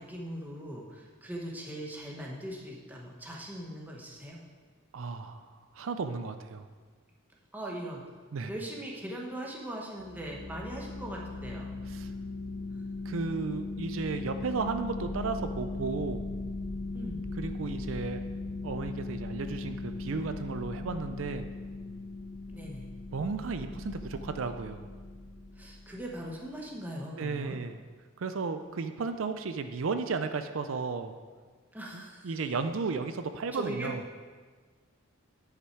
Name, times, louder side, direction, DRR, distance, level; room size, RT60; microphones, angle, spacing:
voice 1, 0.0-4.4 7.5-8.0 8.5-11.7 16.9-17.2 22.5-22.9 25.6-27.7 31.7-32.3 33.5-33.9, right 1 dB, 10° right, -2 dB, 1.0 m, -40 dB
voice 2, 4.9-5.5 5.7-6.6 8.3-8.5 11.9-12.1 13.1-16.3 17.4-18.2 18.6-21.5 23.1-24.8 27.2-27.8 28.2-31.1 31.9-34.1, right 4 dB, 80° right, 9 dB, 0.5 m, -34 dB
sound 1, 10.0-26.2, left 2 dB, 60° left, 1.8 m, -38 dB
9.8 x 5.8 x 4.5 m, 1.5 s
head